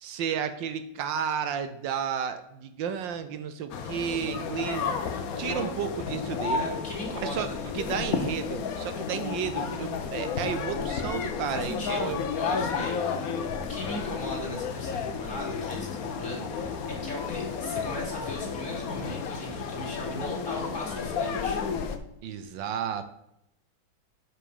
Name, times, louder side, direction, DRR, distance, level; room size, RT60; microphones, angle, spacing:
voice 1, 0.0-4.9 5.3-6.7 7.2-7.5 7.7-12.2 22.2-23.1, right 8 dB, 75° right, 10 dB, 1.3 m, -32 dB
sound 1, 3.7-22.0, left 6 dB, 55° left, 1.1 m, -32 dB
voice 2, 6.5-7.6 11.5-13.0 13.2-21.6, left 1 dB, 40° left, -2 dB, 2.7 m, -38 dB
7.9 x 6.1 x 5.4 m, 0.81 s
omnidirectional pair, 2.1 m